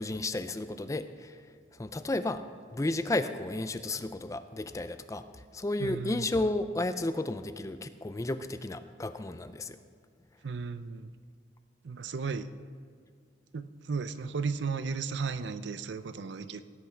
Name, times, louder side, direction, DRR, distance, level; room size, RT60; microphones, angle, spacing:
voice 1, 0.0-1.4 1.8-2.4 2.7-5.2 5.5-9.8, left 2 dB, 15° left, 11 dB, 0.4 m, -32 dB
voice 2, 5.8-6.3 10.4-11.1 11.8-12.5 13.5-16.6, right 5 dB, 75° right, 12 dB, 0.5 m, -35 dB
17.0 x 8.6 x 4.5 m, 2.1 s
head